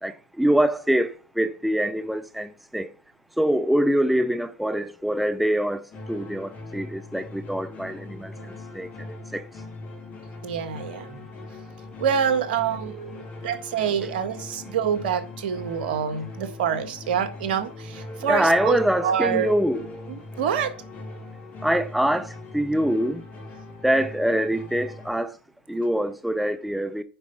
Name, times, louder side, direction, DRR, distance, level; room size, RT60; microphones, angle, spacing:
voice 1, 0.0-2.9 3.4-9.5 13.1-13.8 17.9-20.2 21.6-23.2 23.8-25.4 25.7-27.0, right 1 dB, ahead, 0.7 m, -25 dB
sound 1, 5.9-25.1, left 2 dB, 30° left, 3.9 m, -41 dB
voice 2, 10.4-11.2 12.0-18.8 19.0-19.5 20.4-20.7, right 7 dB, 70° right, 1.7 m, -26 dB
9.9 x 5.3 x 5.5 m
hypercardioid pair, 100°, 6 cm